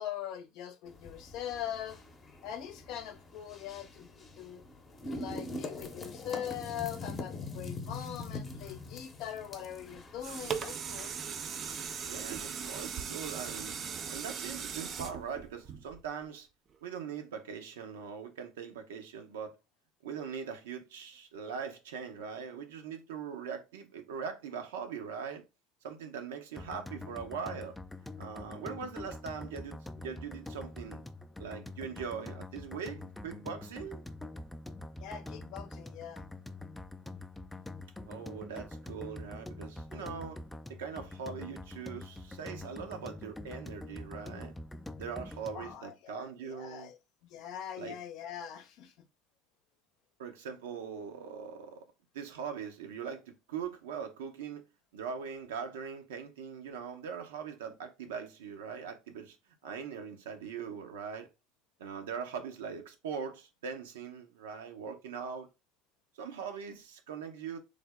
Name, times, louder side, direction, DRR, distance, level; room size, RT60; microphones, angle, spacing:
voice 1, 0.0-2.0 2.4-4.6 5.1-11.1 35.0-36.3 45.5-47.0 47.3-48.9, left 10 dB, 60° left, 0.6 m, -42 dB
sound 1, 0.9-14.1, left 2 dB, 30° left, 0.8 m, -44 dB
sound 2, 9.9-16.2 16.7-16.8, right 7 dB, 40° right, 0.5 m, -39 dB
voice 2, 12.0-13.7 14.1-16.5 16.8-19.5 20.0-25.4 25.8-27.8 28.2-31.0 31.4-34.0 38.1-40.4 40.7-44.5 45.0-46.9 47.8-48.0 50.2-51.8 52.1-54.6 54.9-59.4 59.6-61.3 61.8-65.5 66.2-67.6, right 6 dB, 80° right, 0.7 m, -41 dB
sound 3, 26.6-45.8, left 2 dB, 10° left, 0.4 m, -45 dB
3.4 x 2.0 x 3.5 m
hypercardioid pair, 85°, 0 cm